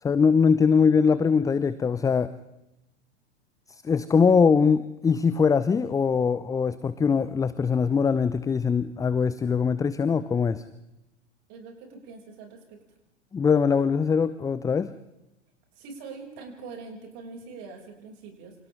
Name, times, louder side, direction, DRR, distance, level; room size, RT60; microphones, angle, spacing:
voice 1, 0.0-2.3 3.7-10.6 13.3-14.9, left 5 dB, 10° left, 15 dB, 0.7 m, -22 dB
voice 2, 11.5-12.8 15.8-18.6, right 4 dB, 40° right, 1 dB, 7.4 m, -43 dB
29.5 x 27.0 x 3.8 m, 0.91 s
figure-of-eight pair, 95°, 35 cm